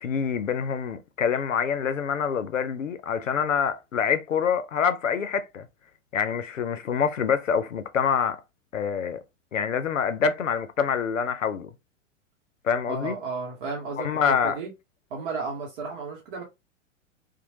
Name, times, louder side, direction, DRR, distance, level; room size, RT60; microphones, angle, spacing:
voice 1, 0.0-5.7 6.1-8.4 8.7-9.2 9.5-11.7 12.6-13.2 14.0-14.6, left 7 dB, 85° left, 0.5 m, -26 dB
voice 2, 12.9-14.7 15.1-16.4, right 4 dB, 45° right, 0.9 m, -33 dB
2.9 x 2.1 x 2.7 m
figure-of-eight pair, 100°, 38 cm